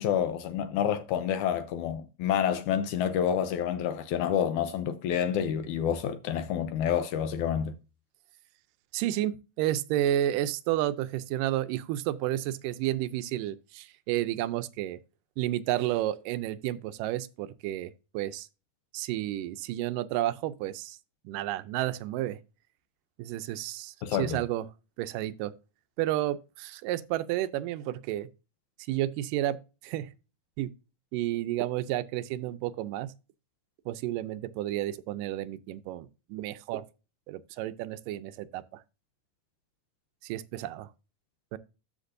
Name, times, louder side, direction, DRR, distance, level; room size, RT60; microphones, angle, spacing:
voice 1, 0.0-7.7 24.0-24.4, left 9 dB, 75° left, 1.9 m, -28 dB
voice 2, 8.9-15.0 15.4-18.5 18.9-21.0 21.3-22.4 23.2-24.7 25.0-25.5 26.0-28.3 28.9-29.6 29.8-30.1 30.6-30.7 31.1-33.1 33.9-36.8 37.3-38.8 40.2-40.9 41.5-41.6, right 13 dB, 80° right, 2.1 m, -31 dB
13.5 x 5.9 x 2.6 m
omnidirectional pair, 3.9 m